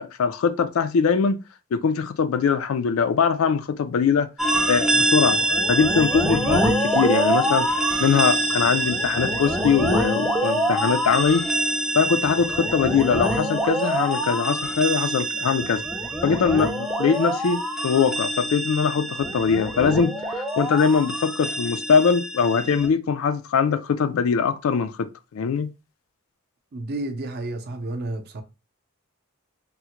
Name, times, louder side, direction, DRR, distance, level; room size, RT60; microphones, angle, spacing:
voice 1, 0.0-1.4 1.7-4.3 4.7-7.7 8.0-11.5 11.9-15.8 16.2-25.7, left 6 dB, 80° left, 0.4 m, -22 dB
sound 1, 4.4-22.9, right 1 dB, ahead, 0.4 m, -25 dB
voice 2, 26.7-28.4, right 2 dB, 50° right, 0.5 m, -31 dB
3.6 x 2.1 x 2.9 m
head